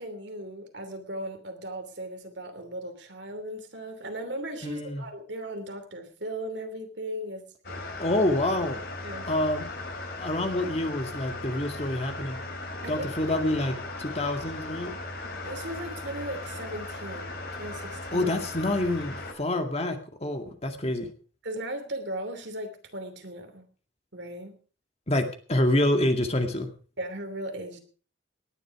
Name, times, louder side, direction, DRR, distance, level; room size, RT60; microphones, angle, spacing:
voice 1, 0.0-7.9 9.0-9.3 12.8-13.1 15.4-18.3 21.4-23.7 24.1-24.6 27.0-27.8, right 1 dB, 65° right, 7 dB, 3.0 m, -37 dB
voice 2, 4.6-5.0 8.0-8.8 9.3-9.7 10.2-12.4 12.9-14.9 18.1-21.1 25.1-26.7, left 1 dB, 35° left, 5 dB, 2.2 m, -27 dB
sound 1, 7.6-19.3, left 2 dB, 55° left, 3.9 m, -37 dB
18.5 x 11.0 x 4.9 m, 0.40 s
head